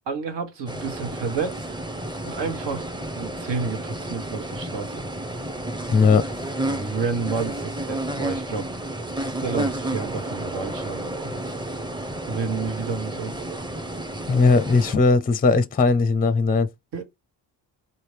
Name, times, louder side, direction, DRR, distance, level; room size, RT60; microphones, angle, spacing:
voice 1, 0.1-1.7 2.2-5.0 6.7-8.7 9.2-11.4 12.3-13.3 16.9-17.0, right 5 dB, 70° right, 1.5 m, -30 dB
sound 1, 0.7-15.0, right 1 dB, 10° right, 0.7 m, -31 dB
voice 2, 5.9-6.2 14.3-16.7, left 4 dB, 20° left, 0.5 m, -18 dB
4.3 x 2.8 x 3.3 m
supercardioid pair, 65°, 45 cm